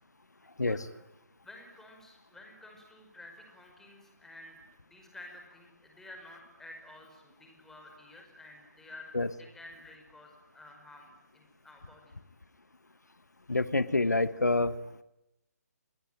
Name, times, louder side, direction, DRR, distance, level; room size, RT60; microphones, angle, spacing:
voice 1, 1.4-12.2, left 2 dB, 5° left, 2 dB, 5.3 m, -52 dB
voice 2, 13.5-14.8, left 2 dB, 80° left, 15 dB, 1.2 m, -27 dB
27.5 x 22.5 x 9.2 m, 0.89 s
figure-of-eight pair, 140°, 9 cm